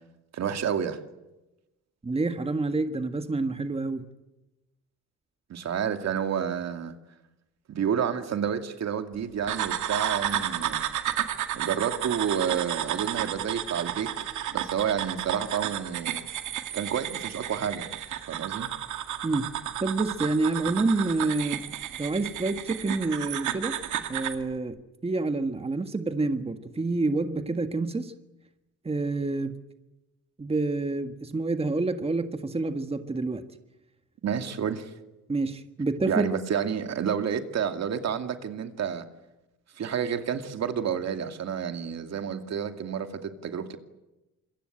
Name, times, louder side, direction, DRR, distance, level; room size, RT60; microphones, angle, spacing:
voice 1, 0.3-1.0 5.5-6.9 7.7-10.8 11.5-14.1 14.5-16.2 16.7-17.9 18.3-18.7 34.2-34.9 36.1-39.0 39.8-43.8, right 8 dB, 60° right, 7 dB, 2.5 m, -30 dB
voice 2, 2.0-4.1 19.2-19.5 19.8-21.6 22.0-23.8 24.1-24.8 25.0-28.1 28.8-29.6 30.4-33.4 35.3-36.3, right 3 dB, 20° right, 8 dB, 1.7 m, -28 dB
sound 1, 9.5-24.4, right 11 dB, 75° right, 2.4 m, -32 dB
26.5 x 22.5 x 9.0 m, 1.0 s
cardioid pair, 90°, 30 cm